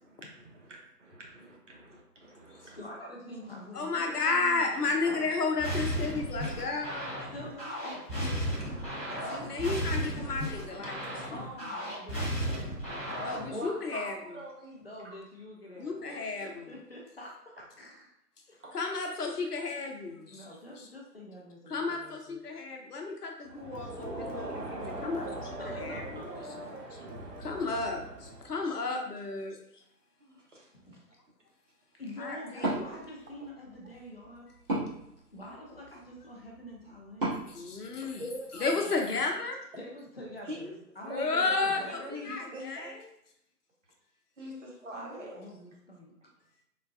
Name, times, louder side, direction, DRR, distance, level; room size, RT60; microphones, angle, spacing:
voice 1, 0.1-3.0 4.8-5.6 6.1-6.8 7.4-7.5 7.9-10.4 10.7-11.5 12.1-15.2 18.6-18.7 30.2-30.7 35.0-35.1 36.8-37.0 37.8-38.7 40.4-40.7 41.1-43.0 44.4-45.4, right 1 dB, 50° right, -1 dB, 0.8 m, -45 dB
voice 2, 2.8-4.9 7.3-8.4 11.3-12.9 14.8-18.1 18.5-18.6 20.3-22.4 25.6-26.8 30.7-31.0 32.0-34.5 35.3-37.4 38.7-39.1 39.7-42.8 44.9-46.1, left 1 dB, 40° left, -2 dB, 0.6 m, -46 dB
voice 3, 3.7-7.2 9.3-11.1 13.2-14.4 15.8-16.6 18.7-20.4 20.8-20.9 21.7-26.0 27.4-29.6 32.2-32.7 37.5-38.2 38.6-39.6 41.0-43.0, left 3 dB, 70° left, 2 dB, 0.8 m, -33 dB
sound 1, 5.6-13.5, equal, 5° left, 1.0 m, -34 dB
Crowd, 23.5-28.7, right 1 dB, 80° right, 0.8 m, -41 dB
Wood, 32.5-38.6, right 2 dB, 35° right, 1.1 m, -38 dB
3.8 x 2.1 x 2.4 m, 0.76 s
figure-of-eight pair, 145°, 49 cm